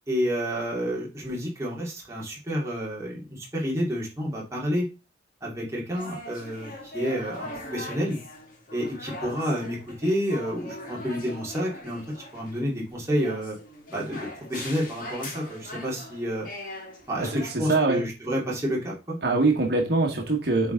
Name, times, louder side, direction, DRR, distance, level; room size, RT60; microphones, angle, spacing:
voice 1, 0.1-4.9 5.4-8.2 8.7-12.0 12.3-13.6 13.9-16.5 17.1-19.2, equal, 15° right, -4 dB, 2.3 m, -29 dB
sound 1, 5.9-17.6, left 1 dB, 50° left, 1.9 m, -41 dB
voice 2, 17.7-18.0 19.2-20.7, right 3 dB, 60° right, 1 dB, 1.5 m, -23 dB
8.9 x 3.6 x 3.8 m, 0.30 s
head